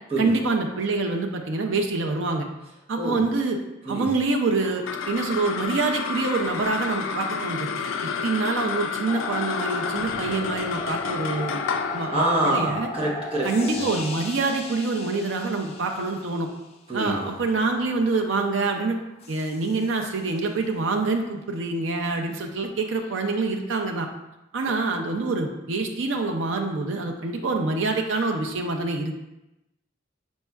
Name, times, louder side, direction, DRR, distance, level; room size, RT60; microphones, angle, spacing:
voice 1, 0.2-2.4 2.9-3.6 3.9-11.6 11.9-12.9 13.4-16.5 16.9-19.0 19.3-24.1 24.5-29.1, right 3 dB, 75° right, 3 dB, 0.5 m, -26 dB
sound 1, 4.6-15.2, left 6 dB, 80° left, 0.3 m, -31 dB
sound 2, 9.1-16.6 17.4-20.4 23.0-23.5, left 2 dB, 30° left, 0.6 m, -38 dB
voice 2, 12.1-13.8 16.9-17.4, right 1 dB, 30° right, -5 dB, 1.0 m, -26 dB
5.4 x 4.1 x 2.3 m, 0.93 s
head